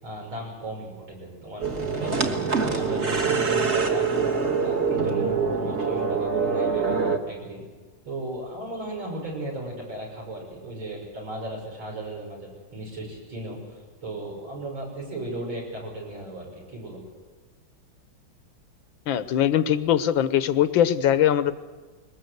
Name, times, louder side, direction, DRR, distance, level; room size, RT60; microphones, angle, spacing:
voice 1, 0.0-7.0 7.3-7.6 8.0-17.0, right 1 dB, 90° right, -1 dB, 7.3 m, -36 dB
sound 1, 1.6-7.2, right 5 dB, 35° right, 1.7 m, -24 dB
voice 2, 19.1-21.5, left 10 dB, 80° left, 13 dB, 1.7 m, -21 dB
22.0 x 19.5 x 8.0 m, 1.3 s
omnidirectional pair, 2.1 m